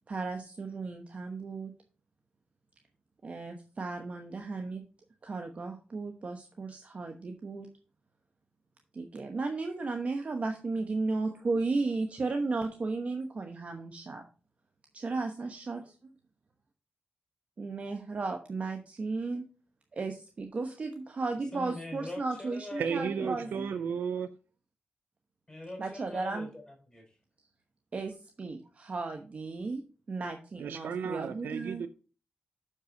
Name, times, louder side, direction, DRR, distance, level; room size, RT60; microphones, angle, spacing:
voice 1, 0.1-1.7 3.2-4.8 5.2-7.7 8.9-14.2 14.9-16.1 17.6-19.4 19.9-23.7 25.8-26.5 27.9-29.8 30.1-31.9, right 3 dB, 45° right, 5 dB, 1.0 m, -35 dB
voice 2, 21.5-23.8 25.5-27.2, left 2 dB, 15° left, 1 dB, 4.8 m, -43 dB
voice 3, 22.8-24.3 30.6-31.9, right 6 dB, 90° right, 9 dB, 0.5 m, -33 dB
6.8 x 5.5 x 6.2 m, 0.37 s
cardioid pair, 90°, 3 cm